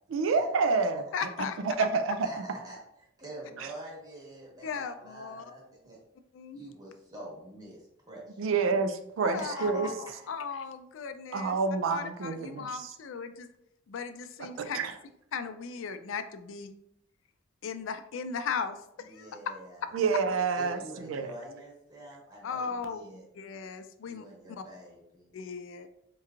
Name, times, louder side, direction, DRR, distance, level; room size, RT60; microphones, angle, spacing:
voice 1, 0.1-1.3 1.6-2.4 3.6-3.7 8.4-9.9 11.3-12.7 14.6-14.9 19.9-21.3, right 4 dB, 85° right, 8 dB, 0.4 m, -28 dB
voice 2, 1.1-1.9 4.6-5.4 6.3-6.6 9.2-11.6 11.9-13.5 13.9-14.8 15.3-16.7 17.6-19.5 22.4-24.6 25.3-25.9, left 6 dB, 75° left, 9 dB, 0.3 m, -37 dB
voice 3, 2.2-2.8 3.2-6.0 6.5-8.4 9.2-9.7 10.1-10.3 19.0-19.8 20.6-23.2 24.0-25.3, right 1 dB, 20° right, -4 dB, 1.1 m, -46 dB
4.5 x 2.9 x 2.4 m, 0.78 s
head